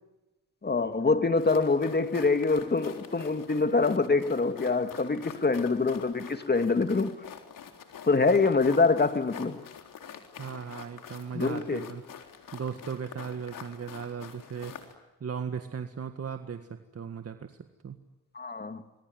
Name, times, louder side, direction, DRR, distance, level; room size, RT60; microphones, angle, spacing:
voice 1, 0.6-7.2 8.1-9.6 11.3-11.8 18.3-18.8, left 4 dB, 30° left, 2.2 m, -25 dB
sound 1, 1.4-14.9, left 8 dB, 65° left, 3.9 m, -46 dB
voice 2, 10.4-12.0 12.5-14.9 15.2-17.6 17.8-18.0, right 6 dB, 45° right, 1.9 m, -37 dB
28.0 x 22.0 x 9.3 m
supercardioid pair, 65°, 35 cm